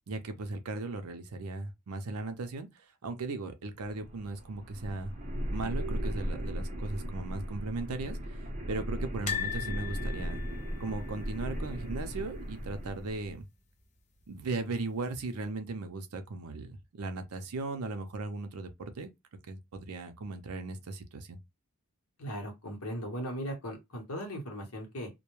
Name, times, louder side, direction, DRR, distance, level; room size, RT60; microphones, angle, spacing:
voice 1, 0.1-2.7 3.0-5.1 5.5-8.4 8.7-10.4 10.8-13.5 14.3-19.1 19.5-21.4, right 3 dB, 75° right, 0.5 m, -37 dB
sound 1, 3.8-13.3, equal, 35° right, 0.6 m, -37 dB
sound 2, 9.3-12.3 12.6-12.8 13.0-13.1 14.4-14.9 15.4-15.5, left 9 dB, 30° left, 0.4 m, -39 dB
voice 2, 22.2-25.1, equal, 75° left, 1.0 m, -38 dB
2.2 x 2.1 x 3.0 m
head